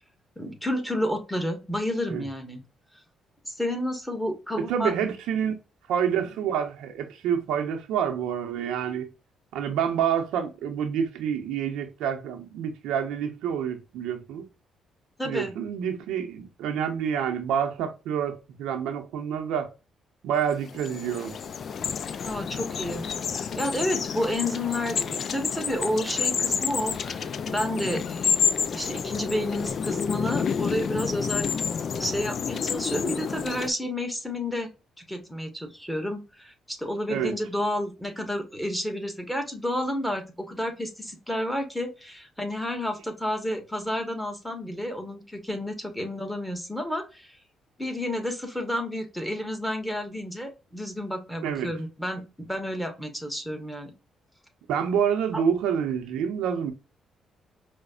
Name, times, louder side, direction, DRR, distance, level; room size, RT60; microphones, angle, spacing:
voice 1, 0.4-2.6 3.4-5.1 15.2-15.5 22.2-23.0 23.3-28.4 28.7-31.5 32.0-34.7 35.0-47.3 47.8-52.2 52.5-53.9 55.3-55.4, left 1 dB, 5° left, 1.0 m, -30 dB
voice 2, 4.7-5.5 5.9-9.1 9.5-14.5 15.2-19.7 20.2-21.3 37.1-37.4 51.4-51.7 54.7-56.7, right 8 dB, 90° right, 0.7 m, -28 dB
sound 1, 20.5-33.7, left 6 dB, 55° left, 0.3 m, -29 dB
5.0 x 2.1 x 2.4 m
cardioid pair, 90°, 0 cm